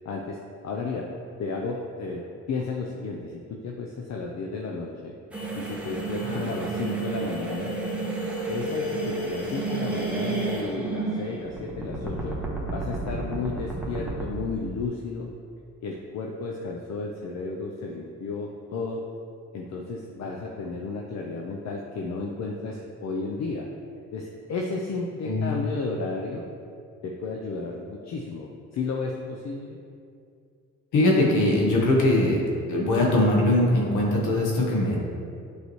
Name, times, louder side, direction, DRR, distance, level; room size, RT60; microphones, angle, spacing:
voice 1, 0.0-1.1 1.4-5.1 5.5-7.7 8.5-12.4 12.7-15.3 15.8-19.0 19.5-23.7 24.1-26.5 27.0-29.8, left 4 dB, 60° left, 0 dB, 0.7 m, -33 dB
sound 1, 5.3-14.3, right 3 dB, 5° right, 1.2 m, -31 dB
voice 2, 25.2-25.5 30.9-32.4 32.7-35.0, left 1 dB, 80° left, -3 dB, 1.3 m, -21 dB
8.1 x 4.8 x 3.2 m, 2.3 s
cardioid pair, 90°, 30 cm